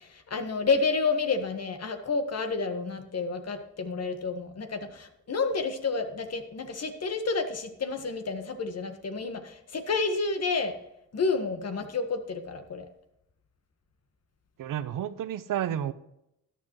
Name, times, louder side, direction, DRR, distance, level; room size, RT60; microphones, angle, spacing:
voice 1, 0.0-10.8 11.1-12.8, left 4 dB, 45° left, 1.6 m, -30 dB
voice 2, 14.6-15.9, right 10 dB, 65° right, 0.8 m, -31 dB
13.5 x 10.0 x 3.2 m
supercardioid pair, 65°, 36 cm